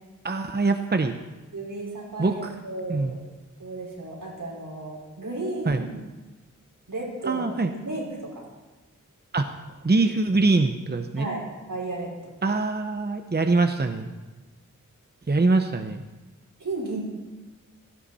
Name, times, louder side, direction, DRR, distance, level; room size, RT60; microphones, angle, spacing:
voice 1, 0.2-1.2 2.2-2.5 2.9-3.2 5.7-5.8 7.3-7.7 9.3-9.5 9.8-11.3 12.4-14.1 15.3-16.0, right 3 dB, 30° right, 7 dB, 0.9 m, -23 dB
voice 2, 1.5-3.2 3.6-5.9 6.9-8.4 11.2-12.4 16.6-17.0, right 2 dB, 85° right, -4 dB, 5.1 m, -34 dB
17.0 x 15.0 x 4.3 m, 1.2 s
wide cardioid pair, 80°, 32 cm